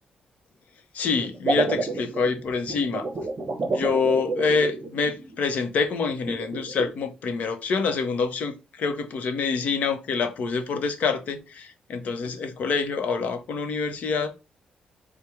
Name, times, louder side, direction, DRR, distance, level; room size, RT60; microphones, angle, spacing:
voice 1, 0.9-3.1 3.6-14.3, left 5 dB, 65° left, 0.8 m, -26 dB
sound 1, 1.2-5.4 6.3-6.9, right 3 dB, 35° right, 0.9 m, -29 dB
4.4 x 2.2 x 4.7 m
cardioid pair, 135°, 3 cm